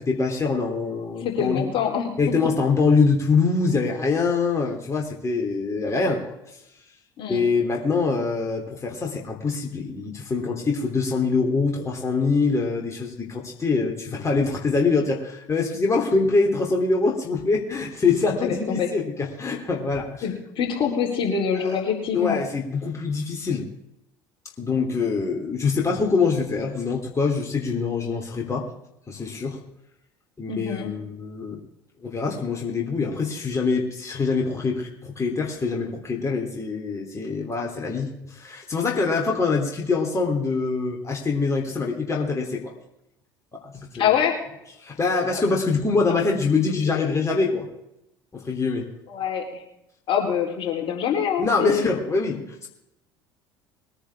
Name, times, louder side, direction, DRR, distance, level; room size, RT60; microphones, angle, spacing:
voice 1, 0.0-1.7 2.2-6.3 7.3-20.2 22.1-23.7 24.6-28.6 29.1-29.6 30.4-31.6 32.0-42.7 43.6-44.1 44.8-47.7 48.3-48.9 51.4-52.7, left 4 dB, 25° left, 0 dB, 3.2 m, -24 dB
voice 2, 1.2-2.1 7.2-7.4 18.4-18.9 20.2-22.4 30.5-30.9 44.0-44.4 46.9-47.0 49.1-49.6 50.1-51.9, left 7 dB, 50° left, 1 dB, 3.6 m, -25 dB
21.5 x 10.0 x 3.6 m, 0.83 s
hypercardioid pair, 65°, 11 cm